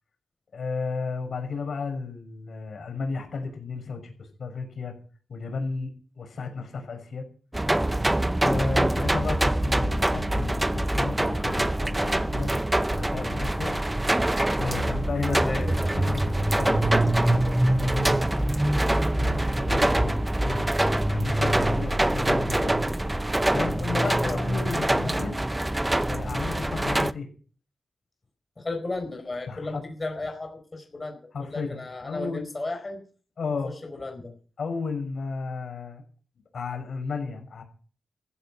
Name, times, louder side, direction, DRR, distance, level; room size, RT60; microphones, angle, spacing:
voice 1, 0.5-4.9 5.3-7.2 8.4-12.5 12.8-13.7 14.6-22.8 23.5-25.4 26.1-27.3 29.5-29.8 31.3-32.4 33.4-33.7 34.6-36.0 36.5-37.6, left 4 dB, 65° left, 5 dB, 6.3 m, -33 dB
sound 1, 7.5-27.1, right 1 dB, 15° right, 0.7 m, -24 dB
voice 2, 15.5-15.9 24.2-24.7 28.6-33.0 33.6-34.3, left 2 dB, 30° left, 4 dB, 4.5 m, -35 dB
15.0 x 15.0 x 6.1 m, 0.42 s
wide cardioid pair, 110°, 0 cm